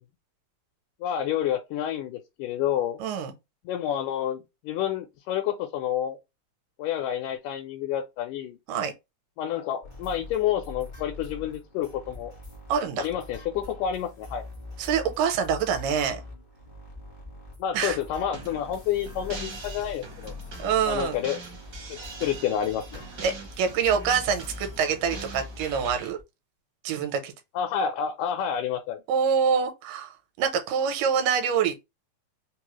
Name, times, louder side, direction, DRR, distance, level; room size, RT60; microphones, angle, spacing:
voice 1, 1.0-3.0 3.7-6.2 6.8-8.6 9.4-12.3 13.0-14.4 17.6-20.3 20.9-21.4 21.9-23.0 27.6-29.0, left 9 dB, 80° left, 2.1 m, -29 dB
voice 2, 3.0-3.3 8.7-8.9 12.7-13.1 14.8-16.2 17.7-18.0 20.6-21.2 23.2-26.2 26.8-27.3 29.1-30.1 30.4-31.8, right 7 dB, 80° right, 2.4 m, -25 dB
sound 1, 9.8-26.2, left 2 dB, 40° left, 0.6 m, -43 dB
sound 2, 18.3-26.1, right 4 dB, 60° right, 1.1 m, -43 dB
5.3 x 2.0 x 3.0 m
omnidirectional pair, 3.8 m